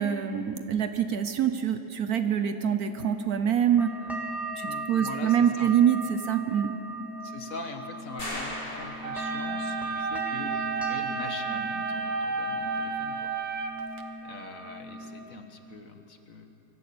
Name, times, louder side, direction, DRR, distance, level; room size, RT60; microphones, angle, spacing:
voice 1, 0.0-3.9 4.6-6.8, right 9 dB, 60° right, 8 dB, 1.2 m, -25 dB
sound 1, 2.9-15.2, right 1 dB, ahead, 2.0 m, -37 dB
voice 2, 4.6-5.7 7.2-13.3 14.2-16.5, left 3 dB, 50° left, 5 dB, 1.8 m, -42 dB
sound 2, 8.2-9.7, left 1 dB, 30° left, 2.8 m, -38 dB
sound 3, 9.0-14.0, right 5 dB, 80° right, 1.9 m, -32 dB
23.5 x 14.5 x 8.7 m, 2.9 s
omnidirectional pair, 2.0 m